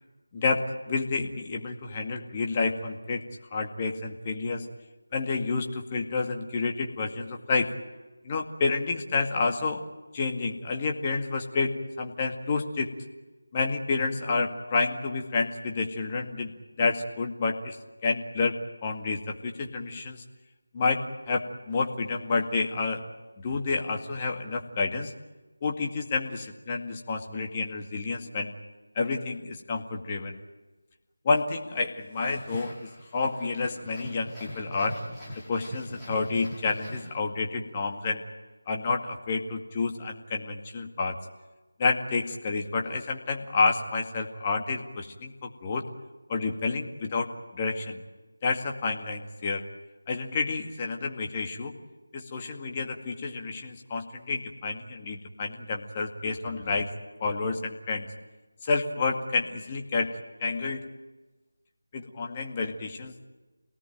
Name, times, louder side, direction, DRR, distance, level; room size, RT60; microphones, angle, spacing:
voice 1, 0.3-3.2 3.5-4.7 5.1-7.7 8.2-9.8 10.1-12.9 13.5-17.8 18.0-20.2 20.7-23.0 23.4-25.1 25.6-28.5 29.0-30.4 31.2-35.0 35.5-38.2 38.7-41.2 41.8-45.9 46.3-48.0 48.4-49.6 50.1-51.7 52.1-56.9 57.2-58.1 58.6-60.9 61.9-63.1, left 4 dB, 20° left, 2 dB, 2.1 m, -29 dB
sound 1, 32.3-37.6, equal, ahead, 5.1 m, -42 dB
28.5 x 18.5 x 9.2 m, 1.2 s
figure-of-eight pair, 165°, 0 cm